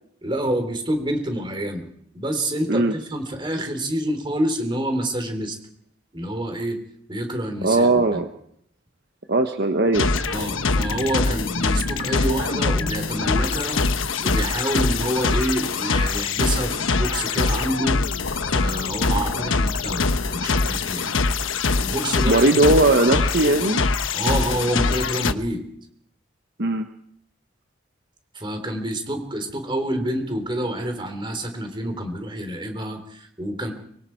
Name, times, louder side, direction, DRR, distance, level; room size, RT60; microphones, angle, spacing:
voice 1, 0.2-1.9 2.1-5.6 6.1-6.8 7.1-8.2 10.3-13.8 14.2-18.0 18.5-21.1 21.8-22.5 24.1-25.6 28.3-33.7, right 1 dB, 25° right, 6 dB, 3.7 m, -27 dB
voice 2, 7.6-8.3 9.3-10.1 22.3-23.8 26.6-26.9, right 2 dB, 55° right, 6 dB, 1.2 m, -18 dB
sound 1, 9.9-25.3, left 3 dB, 85° left, 1.2 m, -23 dB
24.0 x 23.5 x 4.7 m, 0.69 s
head